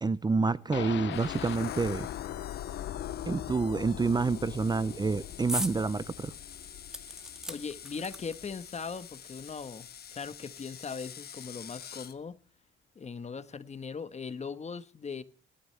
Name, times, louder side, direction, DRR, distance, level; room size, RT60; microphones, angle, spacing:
voice 1, 0.0-2.1 3.3-6.3, right 4 dB, 20° right, 0.6 m, -28 dB
sound 1, 0.7-8.6 8.9-9.0 9.4-9.5, left 11 dB, 65° left, 0.8 m, -40 dB
Screech, 1.1-12.2, left 8 dB, 50° left, 1.2 m, -48 dB
sound 2, 5.5-5.8 6.2-6.3 6.9-8.6 9.5-9.6 9.8-9.9, equal, 5° right, 1.8 m, -37 dB
voice 2, 7.1-12.4 12.9-15.2, left 5 dB, 35° left, 1.3 m, -40 dB
18.5 x 13.0 x 3.4 m
cardioid pair, 90°, 20 cm